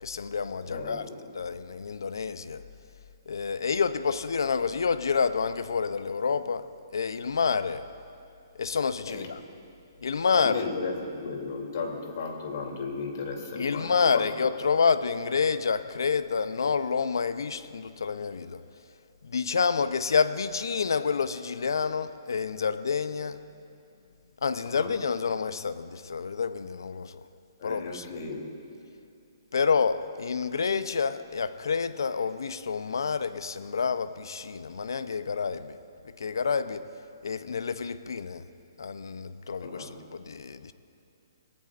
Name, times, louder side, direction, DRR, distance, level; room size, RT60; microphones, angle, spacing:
voice 1, 0.0-1.0 1.3-2.6 3.3-7.8 8.6-9.4 10.0-10.7 13.5-18.6 19.2-23.4 24.4-27.2 27.6-28.1 29.5-35.8 36.2-36.8 37.2-38.4 38.8-40.7, left 5 dB, 80° left, 13 dB, 0.6 m, -28 dB
voice 2, 0.7-1.1 9.1-9.3 10.3-14.2 24.7-24.9 27.6-28.4 39.6-39.9, left 4 dB, 55° left, 1 dB, 2.9 m, -35 dB
25.0 x 18.0 x 2.5 m, 2.6 s
hypercardioid pair, 145°, 2 cm